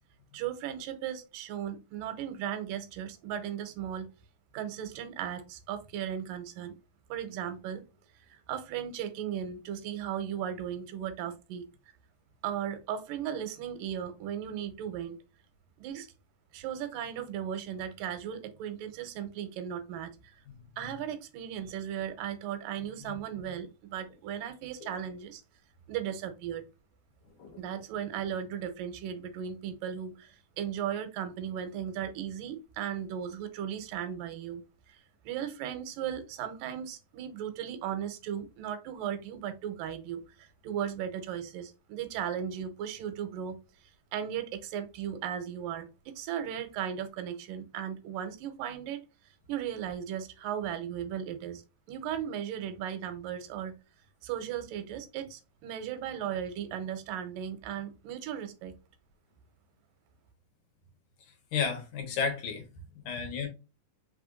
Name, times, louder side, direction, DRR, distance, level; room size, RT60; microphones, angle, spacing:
voice 1, 0.3-4.1 4.5-6.7 7.1-7.8 8.3-11.7 12.4-15.2 15.8-16.1 16.5-20.1 20.8-25.4 25.9-26.6 27.6-34.6 34.9-43.6 44.1-49.0 49.5-51.6 51.9-53.8 54.2-58.7, right 9 dB, 80° right, 2.3 m, -36 dB
voice 2, 61.5-62.6 63.1-63.5, left 6 dB, 70° left, 2.5 m, -32 dB
5.6 x 3.4 x 2.5 m
omnidirectional pair, 4.0 m